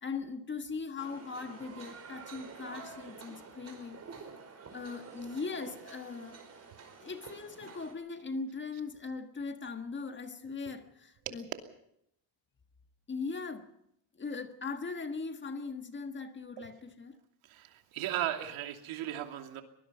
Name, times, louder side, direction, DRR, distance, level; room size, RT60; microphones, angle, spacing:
voice 1, 0.0-4.0 4.7-6.4 7.0-11.5 13.1-13.7 14.2-17.2, left 4 dB, 25° left, 1.6 m, -39 dB
sound 1, 1.0-7.9, right 5 dB, 30° right, 5.0 m, -49 dB
voice 2, 17.5-19.6, right 12 dB, 80° right, 2.9 m, -36 dB
23.5 x 19.5 x 5.7 m
cardioid pair, 150°, 48 cm